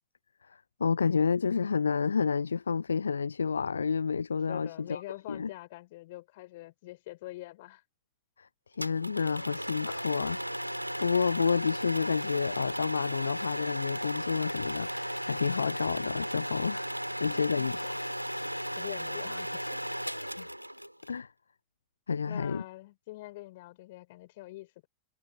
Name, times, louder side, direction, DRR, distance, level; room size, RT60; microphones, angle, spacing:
voice 1, 0.5-5.0 5.3-5.5 8.4-10.7 11.0-16.9 17.2-17.9 20.4-20.5 21.1-21.3 22.1-22.6, left 5 dB, 75° left, 0.3 m, -30 dB
voice 2, 4.5-7.8 18.7-19.8 22.3-24.9, left 18 dB, 50° left, 3.6 m, -45 dB
sound 1, 8.8-21.1, equal, 90° right, 2.7 m, -35 dB
figure-of-eight pair, 90°, 0 cm